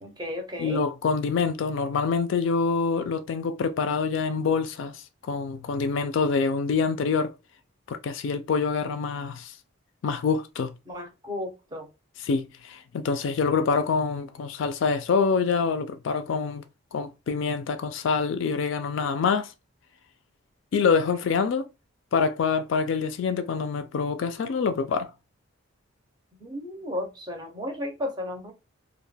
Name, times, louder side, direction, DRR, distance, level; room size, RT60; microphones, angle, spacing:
voice 1, 0.0-0.8 10.9-11.9 26.4-28.5, left 1 dB, 20° right, 0.5 m, -34 dB
voice 2, 0.6-4.9 5.2-7.3 7.9-9.5 10.0-10.7 12.2-16.6 16.9-19.5 20.7-21.6 22.1-25.1, left 5 dB, 65° left, 0.3 m, -26 dB
2.2 x 2.1 x 3.2 m
head